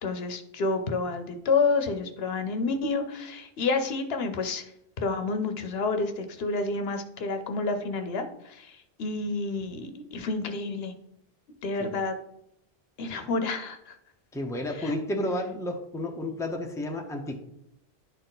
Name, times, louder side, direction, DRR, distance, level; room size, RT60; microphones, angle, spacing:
voice 1, 0.0-4.7 5.0-10.9 11.6-12.2 13.0-14.0 14.8-14.9, left 3 dB, 75° left, 8 dB, 1.0 m, -29 dB
voice 2, 14.3-17.4, left 1 dB, 5° left, 2 dB, 0.8 m, -31 dB
10.5 x 4.3 x 4.0 m, 0.78 s
omnidirectional pair, 1.1 m